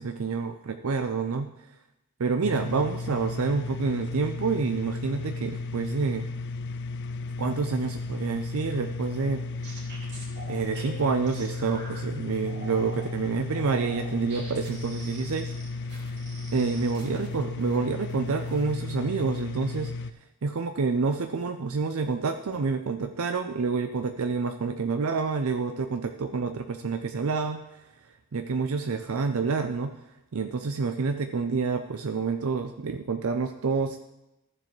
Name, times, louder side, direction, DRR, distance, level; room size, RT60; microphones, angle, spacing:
voice 1, 0.0-1.7 2.2-6.3 7.4-9.4 10.5-15.5 15.8-16.1 16.5-19.9 20.4-27.8 28.3-30.0 30.3-34.0, right 4 dB, 70° right, 7 dB, 0.5 m, -28 dB
sound 1, 2.4-20.1, left 3 dB, 50° left, 0.4 m, -34 dB
sound 2, 9.1-12.0 12.5-13.1 13.5-17.8 18.1-18.7 19.1-19.5, right 2 dB, 50° right, 2.5 m, -45 dB
Keyboard (musical), 10.8-13.5, left 8 dB, 20° left, 1.2 m, -50 dB
13.5 x 7.4 x 3.2 m, 0.92 s
head